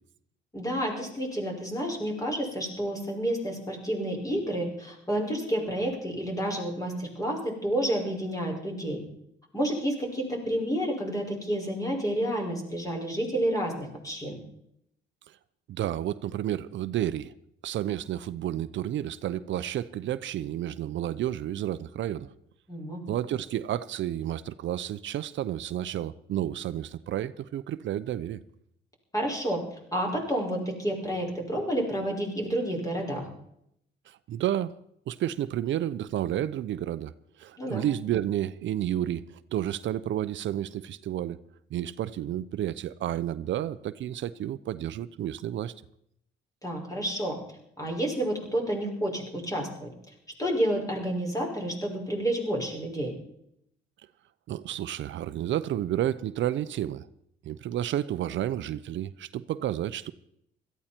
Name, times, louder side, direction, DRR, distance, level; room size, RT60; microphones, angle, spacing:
voice 1, 0.5-9.0 9.5-14.4 22.7-23.0 29.1-29.6 29.9-33.3 37.6-37.8 46.6-47.4 47.8-49.9 50.4-53.1, right 1 dB, 15° left, 5.7 m, -30 dB
voice 2, 15.7-17.3 17.6-22.3 23.1-28.4 34.1-34.7 35.1-41.4 41.7-45.7 54.5-57.1 57.4-60.1, right 12 dB, 70° right, 0.6 m, -31 dB
17.5 x 14.0 x 4.4 m
cardioid pair, 90°, 20 cm